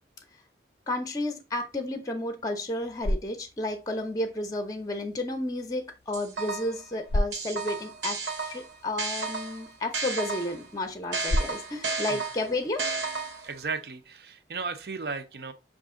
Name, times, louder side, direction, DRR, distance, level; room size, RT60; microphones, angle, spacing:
voice 1, 0.9-12.8, left 1 dB, 20° left, 0.6 m, -32 dB
sound 1, 2.6-13.7, left 1 dB, 65° left, 0.5 m, -37 dB
sound 2, 6.1-6.8 7.3-10.7 11.1-13.6, right 4 dB, 90° right, 0.9 m, -33 dB
voice 2, 13.4-15.5, right 4 dB, 65° right, 0.6 m, -35 dB
5.9 x 2.5 x 3.6 m
head